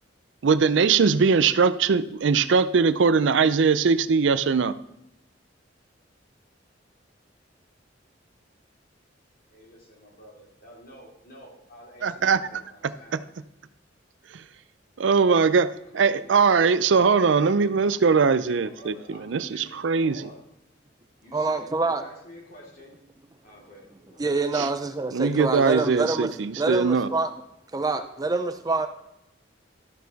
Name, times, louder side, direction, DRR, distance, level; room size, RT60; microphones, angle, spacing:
voice 1, 0.4-4.7 12.0-12.4 13.1-13.2 14.3-14.4 15.0-20.2 24.5-24.7 25.1-27.1, right 5 dB, 80° right, 15 dB, 0.5 m, -21 dB
voice 2, 9.5-13.2 15.7-16.7 17.1-17.7 18.5-20.4 21.2-22.9 23.4-24.2, equal, 50° left, -4 dB, 3.7 m, -48 dB
voice 3, 21.3-22.0 24.2-26.3 26.6-27.3 27.7-28.9, right 3 dB, 20° right, 9 dB, 0.4 m, -26 dB
12.5 x 6.4 x 4.1 m, 0.80 s
head